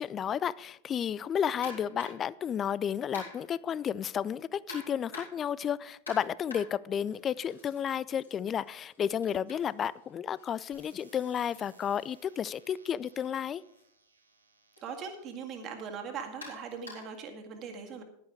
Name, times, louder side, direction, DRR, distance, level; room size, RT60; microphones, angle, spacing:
voice 1, 0.0-13.6, left 8 dB, 25° left, 21 dB, 0.4 m, -32 dB
sound 1, 1.6-2.3 3.1-3.6 4.7-5.5 6.1-7.8 8.1-12.0 13.1-13.3 13.7-13.8 14.8-14.9 16.4-17.2, left 2 dB, 75° left, 4.7 m, -48 dB
sound 2, 10.7-15.5 16.2-16.7, right 3 dB, 80° right, 1.8 m, -63 dB
voice 2, 14.8-18.0, right 6 dB, 35° right, 4 dB, 1.9 m, -40 dB
11.0 x 10.5 x 4.7 m, 0.73 s
figure-of-eight pair, 90°, 0 cm